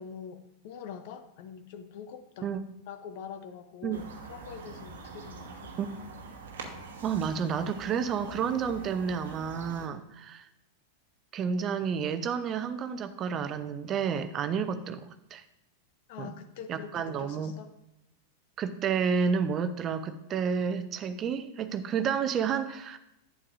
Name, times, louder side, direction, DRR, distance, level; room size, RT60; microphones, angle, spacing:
voice 1, 0.0-2.5 2.9-5.7 16.1-17.7, left 7 dB, 50° left, 10 dB, 0.7 m, -44 dB
sound 1, 3.9-9.9, right 4 dB, 65° right, 1.1 m, -45 dB
voice 2, 7.0-10.5 11.3-15.4 16.2-16.3 16.7-17.5 18.6-23.0, right 6 dB, 30° right, 11 dB, 0.6 m, -30 dB
11.0 x 8.6 x 2.6 m, 0.86 s
figure-of-eight pair, 90°, 0 cm